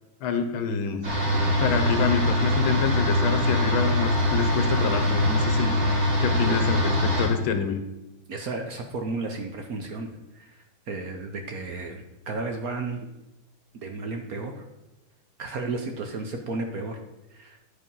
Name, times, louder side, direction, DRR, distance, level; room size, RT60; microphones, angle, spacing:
voice 1, 0.2-1.0 1.6-5.8 6.2-7.8, left 6 dB, 85° left, 8 dB, 1.7 m, -27 dB
sound 1, 1.0-7.3, left 1 dB, 35° right, 2.6 m, -23 dB
voice 2, 8.3-13.1 13.7-14.6 15.4-17.0 17.3-17.6, right 3 dB, 60° right, 4 dB, 1.1 m, -33 dB
9.8 x 5.1 x 5.4 m, 0.97 s
omnidirectional pair, 2.2 m